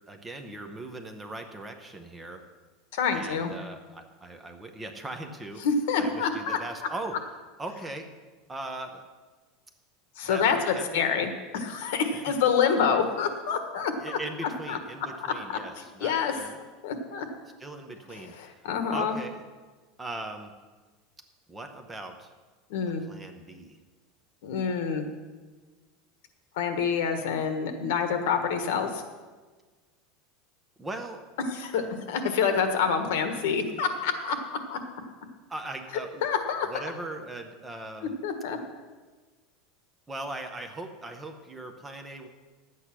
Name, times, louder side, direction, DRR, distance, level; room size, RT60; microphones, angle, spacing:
voice 1, 0.1-2.4 3.1-5.6 6.0-7.2 7.6-8.1 8.5-9.0 10.2-11.0 12.1-12.4 14.0-16.6 17.6-18.6 18.9-19.4 20.0-20.5 21.5-22.3 23.1-23.8 30.8-31.2 35.5-36.3 36.7-38.2 40.1-42.3, right 2 dB, 10° right, 5 dB, 0.7 m, -39 dB
voice 2, 2.9-3.5 5.6-6.6 10.2-14.8 15.5-16.3 16.8-17.3 18.1-19.2 22.7-23.0 24.4-25.1 26.6-29.0 31.5-34.4 34.7-34.8 36.2-36.8 38.0-38.6, left 6 dB, 70° left, 7 dB, 1.4 m, -27 dB
11.0 x 8.4 x 6.0 m, 1.3 s
supercardioid pair, 180°, 0 cm